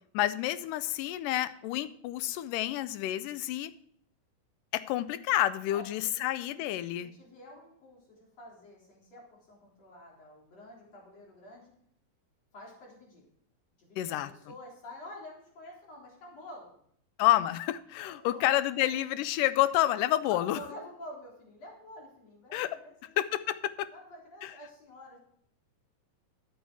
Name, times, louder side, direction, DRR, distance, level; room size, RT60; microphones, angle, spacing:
voice 1, 0.1-3.7 4.7-7.1 14.0-14.3 17.2-20.6 22.5-22.7 23.2-23.9 24.4-24.5, left 14 dB, 80° left, 14 dB, 2.1 m, -29 dB
voice 2, 5.7-6.3 7.0-11.7 12.5-13.2 13.8-16.8 18.0-19.0 20.3-23.2 23.9-25.2, left 1 dB, 45° left, -3 dB, 4.7 m, -49 dB
13.0 x 8.4 x 4.7 m, 0.67 s
omnidirectional pair, 4.0 m